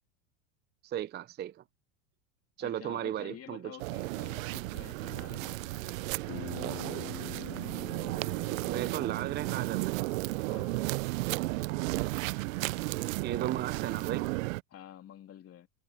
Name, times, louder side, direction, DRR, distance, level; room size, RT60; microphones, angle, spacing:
voice 1, 0.8-1.6 2.6-3.8 8.5-10.0 13.2-14.3, right 11 dB, 25° right, 0.6 m, -35 dB
voice 2, 2.6-6.1 10.5-11.0 14.7-15.7, left 10 dB, 35° left, 3.1 m, -49 dB
sound 1, 3.8-14.6, right 21 dB, 70° right, 0.6 m, -34 dB
Bass guitar, 6.3-10.6, left 24 dB, 65° left, 2.5 m, -46 dB
hypercardioid pair, 100°, 41 cm